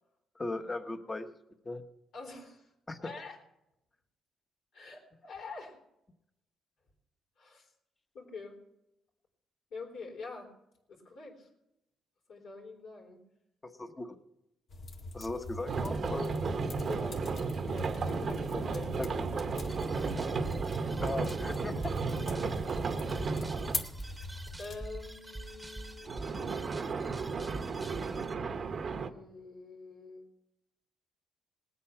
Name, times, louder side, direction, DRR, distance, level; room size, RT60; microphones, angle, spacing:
voice 1, 0.3-1.3 1.6-1.8 2.9-3.1 13.6-14.2 15.1-16.3 19.0-19.3 21.0-21.9 22.5-22.7, left 2 dB, 20° left, 7 dB, 1.3 m, -38 dB
voice 2, 2.1-2.7 3.0-3.4 4.7-5.8 7.4-7.7 8.1-8.6 9.7-10.5 10.9-11.5 12.3-13.2 16.8-18.9 19.8-20.7 23.7-24.2 24.6-26.2 28.8-30.2, left 3 dB, 70° left, -2 dB, 3.9 m, -46 dB
sound 1, 14.7-24.8, left 2 dB, 55° left, 1.9 m, -43 dB
sound 2, 15.7-23.9 26.1-29.1, right 4 dB, 50° right, 0.9 m, -34 dB
sound 3, 19.6-28.3, right 2 dB, 10° right, 1.1 m, -45 dB
19.0 x 8.3 x 5.9 m, 0.86 s
cardioid pair, 90°, 0 cm